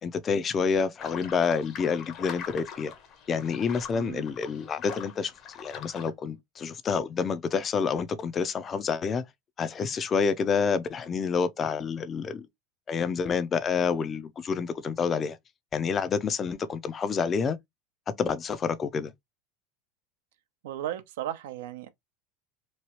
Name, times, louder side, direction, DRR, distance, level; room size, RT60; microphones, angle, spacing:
voice 1, 0.0-2.9 3.3-5.3 5.6-9.2 9.6-12.5 12.9-15.4 15.7-17.6 18.2-19.1, left 6 dB, 30° left, 0.5 m, -28 dB
sound 1, 1.0-6.1, left 8 dB, 50° left, 0.9 m, -43 dB
voice 2, 3.9-4.3 20.6-21.9, right 12 dB, 80° right, 0.6 m, -35 dB
3.0 x 2.3 x 2.9 m
supercardioid pair, 110°, 0 cm